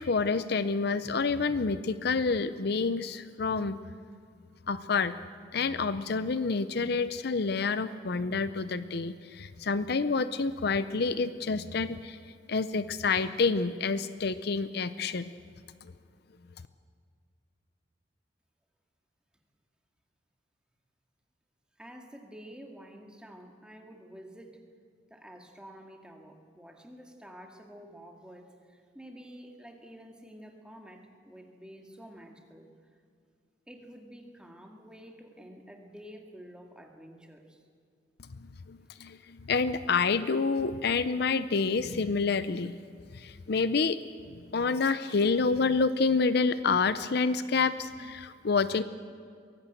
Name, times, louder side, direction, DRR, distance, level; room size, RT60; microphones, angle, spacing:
voice 1, 0.0-3.8 4.7-5.2 5.5-12.2 12.5-15.3 38.4-42.8 43.1-44.0 44.5-48.8, left 4 dB, 55° left, 13 dB, 0.6 m, -28 dB
voice 2, 21.8-24.6 25.1-32.7 33.7-37.6, equal, 5° right, 2 dB, 2.0 m, -49 dB
23.0 x 17.5 x 7.8 m, 2.2 s
head